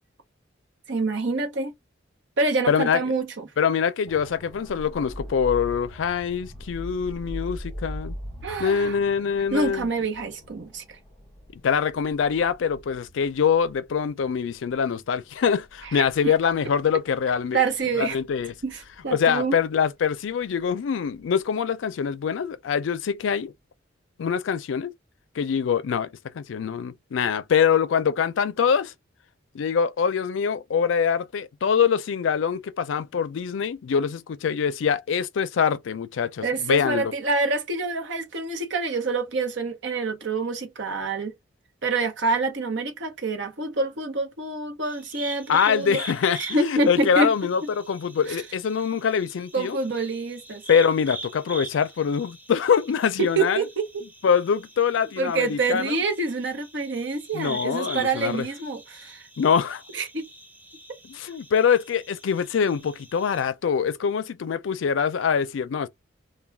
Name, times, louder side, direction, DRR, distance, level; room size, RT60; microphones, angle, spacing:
voice 1, 0.9-1.7 2.4-3.5 8.4-9.0 9.5-11.0 15.9-16.3 17.5-18.2 18.6-19.5 36.4-41.3 41.8-46.0 46.4-47.3 49.5-50.6 53.2-54.1 55.2-59.2 59.9-60.2, right 3 dB, 65° right, 0.8 m, -27 dB
voice 2, 2.7-3.0 3.6-8.1 8.6-9.9 11.5-17.6 18.0-18.5 19.1-23.5 24.2-24.9 25.4-26.1 26.3-28.9 29.5-37.1 45.5-49.8 50.7-53.6 54.2-55.9 57.3-58.5 59.4-59.8 61.0-65.9, left 7 dB, 75° left, 0.4 m, -24 dB
sound 1, 4.1-21.9 22.3-22.5, equal, 5° left, 1.1 m, -42 dB
sound 2, 44.8-63.5, right 1 dB, 10° right, 0.6 m, -43 dB
2.3 x 2.2 x 3.2 m
head